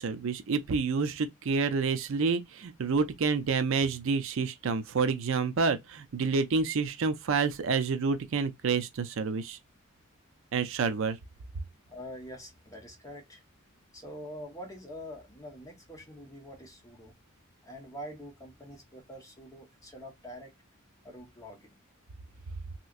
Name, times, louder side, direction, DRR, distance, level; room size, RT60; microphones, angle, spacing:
voice 1, 0.0-9.6 10.5-11.2, right 4 dB, 60° right, 0.5 m, -28 dB
voice 2, 11.9-13.4 13.9-17.1 17.6-20.5 21.0-21.8, equal, 15° left, 1.0 m, -45 dB
3.2 x 2.9 x 2.4 m
head